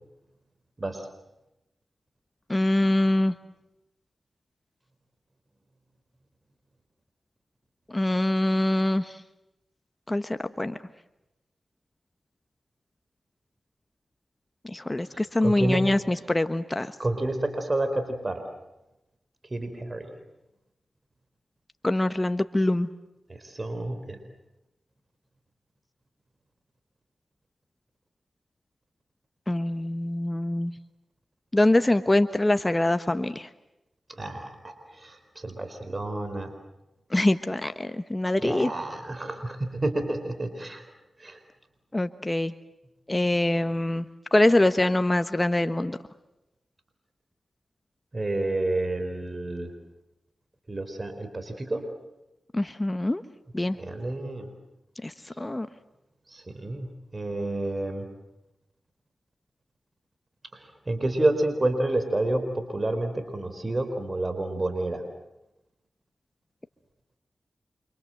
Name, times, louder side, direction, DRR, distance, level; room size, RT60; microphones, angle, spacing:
voice 1, 2.5-3.3 7.9-9.2 10.1-10.8 14.6-16.9 21.8-22.9 29.5-30.7 31.5-33.5 37.1-38.7 41.9-42.5 43.1-44.1 44.3-46.0 52.5-53.2 53.5-53.8 55.0-55.7, left 1 dB, 25° left, 10 dB, 1.2 m, -24 dB
voice 2, 15.1-16.0 17.0-18.4 19.4-20.1 23.3-24.2 34.1-36.5 38.4-40.9 41.2-41.4 48.1-49.7 50.7-51.8 53.8-54.5 55.3-55.4 56.3-58.1 60.5-65.0, right 2 dB, 40° right, 8 dB, 4.3 m, -29 dB
29.5 x 26.0 x 7.8 m, 0.91 s
cardioid pair, 45°, 0 cm